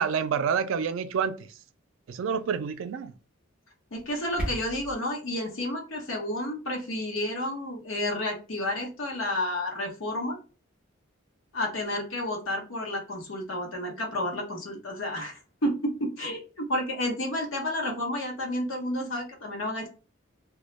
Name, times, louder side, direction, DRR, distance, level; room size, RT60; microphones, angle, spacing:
voice 1, 0.0-1.5 2.1-3.1, right 6 dB, 70° right, 0.3 m, -28 dB
voice 2, 3.9-10.4 11.5-19.9, left 1 dB, 70° left, 0.9 m, -31 dB
sound 1, 3.9-4.9, right 1 dB, 5° right, 0.6 m, -35 dB
2.2 x 2.1 x 2.9 m
head